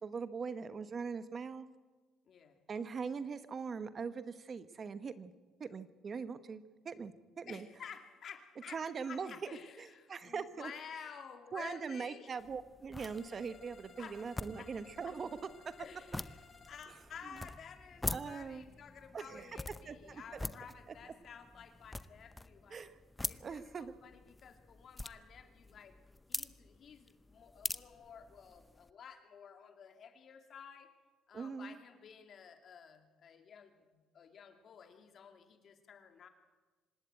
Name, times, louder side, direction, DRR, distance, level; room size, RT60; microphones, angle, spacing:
voice 1, 0.0-1.7 2.7-5.3 5.6-7.7 8.7-9.3 9.8-10.7 11.5-15.3 15.6-15.7 18.1-18.6 19.1-19.5 19.9-20.4 22.7-22.9 23.4-23.9 31.3-31.8, right 5 dB, 40° right, 13 dB, 1.0 m, -41 dB
voice 2, 2.2-2.6 7.5-12.3 14.0-14.2 14.6-14.7 15.1-15.2 15.8-16.4 16.7-22.9 23.2-26.0 26.3-30.9 31.3-36.3, left 7 dB, 50° left, 6 dB, 2.4 m, -52 dB
sound 1, 12.4-28.9, left 2 dB, 10° left, 0.6 m, -46 dB
sound 2, 13.0-16.8, left 5 dB, 35° left, 3.1 m, -59 dB
25.5 x 11.5 x 8.9 m, 1.3 s
cardioid pair, 100°, 0 cm